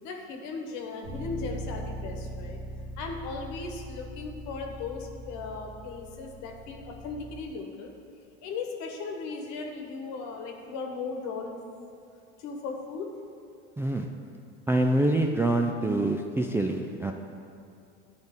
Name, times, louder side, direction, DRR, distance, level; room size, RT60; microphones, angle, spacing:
voice 1, 0.0-2.6 3.0-7.9 8.4-11.6 12.4-13.1, left 4 dB, 60° left, 2 dB, 1.2 m, -37 dB
Bass guitar, 1.0-7.3, right 1 dB, 55° right, 1.8 m, -40 dB
voice 2, 14.7-17.1, right 1 dB, 10° right, 2 dB, 0.3 m, -25 dB
11.0 x 4.0 x 3.6 m, 2.5 s
hypercardioid pair, 80°, 32 cm